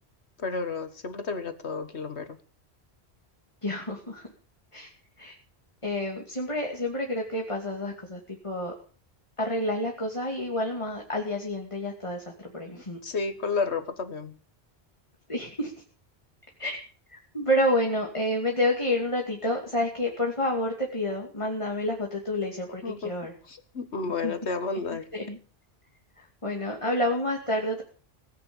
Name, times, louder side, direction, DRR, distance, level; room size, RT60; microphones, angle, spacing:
voice 1, 0.4-2.4 12.7-14.3 22.8-23.1 23.5-25.1, left 4 dB, 85° left, 9 dB, 1.8 m, -31 dB
voice 2, 3.6-4.3 4.7-4.9 5.2-5.3 5.8-8.7 9.4-13.0 15.3-15.7 16.6-16.8 17.1-23.3 24.2-24.3 25.1-25.4 26.2-27.8, left 1 dB, 30° left, 0 dB, 2.7 m, -29 dB
18.5 x 9.8 x 7.2 m, 0.42 s
omnidirectional pair, 1.1 m